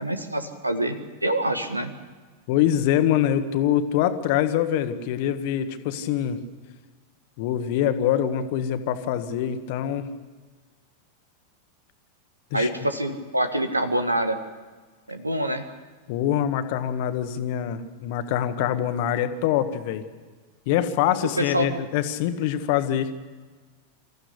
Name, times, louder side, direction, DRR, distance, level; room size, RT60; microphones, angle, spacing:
voice 1, 0.0-1.9 12.5-14.4 15.1-15.6 21.4-21.7, right 1 dB, 85° right, 9 dB, 1.7 m, -26 dB
voice 2, 2.5-6.4 7.4-10.1 12.5-12.7 16.1-20.0 20.6-23.1, left 10 dB, 50° left, 9 dB, 1.7 m, -24 dB
26.0 x 15.0 x 8.3 m, 1.4 s
figure-of-eight pair, 90°, 0 cm